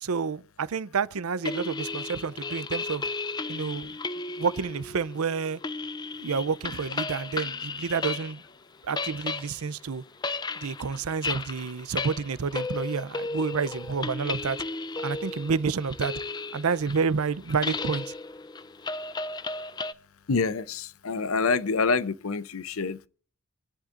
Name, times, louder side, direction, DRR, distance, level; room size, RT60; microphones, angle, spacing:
voice 1, 0.0-3.1 3.5-4.0 4.4-5.6 6.2-8.4 8.8-10.0 10.6-14.6 15.0-16.1 16.5-18.0, right 5 dB, 85° right, 0.6 m, -29 dB
sound 1, 1.4-8.5 8.7-19.9, left 3 dB, 20° left, 0.5 m, -34 dB
voice 2, 20.3-23.1, left 4 dB, 75° left, 0.7 m, -27 dB
26.5 x 10.0 x 2.6 m
head